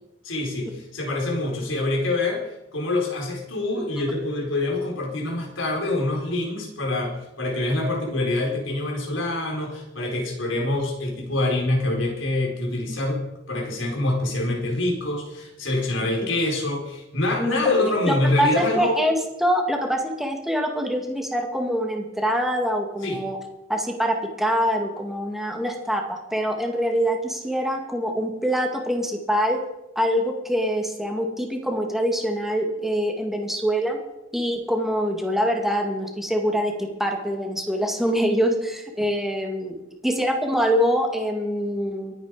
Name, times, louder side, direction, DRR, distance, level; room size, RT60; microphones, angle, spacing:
voice 1, 0.2-13.2 13.5-19.0 23.0-23.2, left 2 dB, 80° left, -1 dB, 4.7 m, -25 dB
voice 2, 17.4-19.2 19.4-23.4 23.7-29.6 30.0-34.0 34.3-39.7 40.0-42.1, equal, ahead, 2 dB, 2.1 m, -24 dB
23.5 x 9.1 x 5.1 m, 0.94 s
head